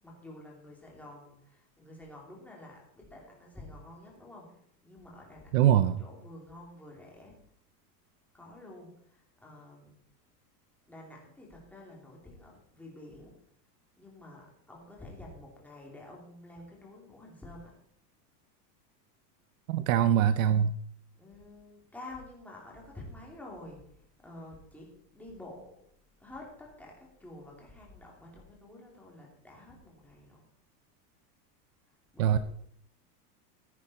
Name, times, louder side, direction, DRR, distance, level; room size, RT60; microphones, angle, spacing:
voice 1, 0.0-5.7 6.0-7.4 8.3-10.3 10.9-13.3 14.0-17.7 21.2-25.8 26.2-30.5 31.8-32.4, left 1 dB, 5° left, 2.8 m, -49 dB
voice 2, 5.5-6.0 19.7-20.8 32.2-32.4, right 10 dB, 55° right, 0.6 m, -23 dB
14.5 x 9.8 x 4.2 m
supercardioid pair, 165°, 49 cm